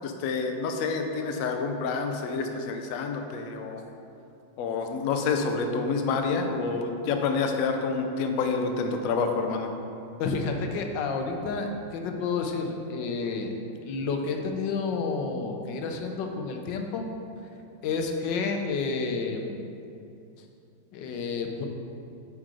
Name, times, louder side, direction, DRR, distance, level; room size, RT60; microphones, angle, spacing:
voice 1, 0.0-3.8 4.6-9.7, left 4 dB, 70° left, 5 dB, 0.8 m, -28 dB
voice 2, 10.2-13.5 13.8-17.1 17.8-19.6 20.9-21.7, left 4 dB, 90° left, 4 dB, 1.3 m, -30 dB
7.4 x 3.9 x 4.7 m, 2.6 s
omnidirectional pair, 1.9 m